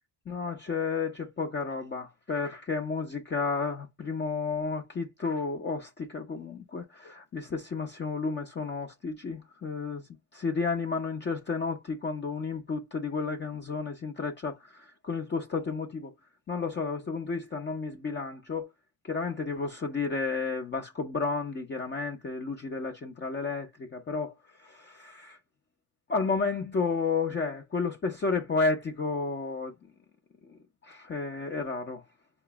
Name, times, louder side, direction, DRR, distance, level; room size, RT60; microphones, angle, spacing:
voice 1, 0.3-16.1 16.5-18.7 19.0-25.4 26.1-29.7 30.4-32.0, left 4 dB, 25° left, 0.6 m, -32 dB
5.1 x 2.0 x 3.3 m
cardioid pair, 120°, 42 cm